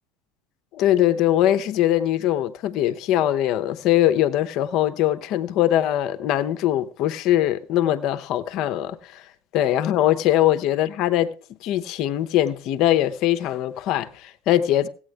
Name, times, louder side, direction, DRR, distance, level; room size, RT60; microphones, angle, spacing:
voice 1, 0.7-9.3 9.5-11.3 11.6-14.9, left 12 dB, 55° left, 0.9 m, -21 dB
16.5 x 8.9 x 3.4 m
hypercardioid pair, 75°, 0 cm